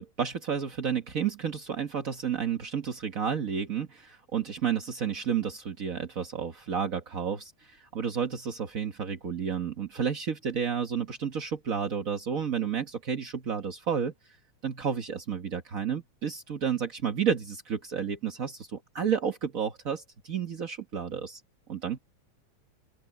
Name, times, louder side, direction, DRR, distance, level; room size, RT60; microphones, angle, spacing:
voice 1, 0.0-14.1 14.6-21.4 21.7-22.0, right 7 dB, 45° right, 1.1 m, -31 dB
omnidirectional pair, 3.4 m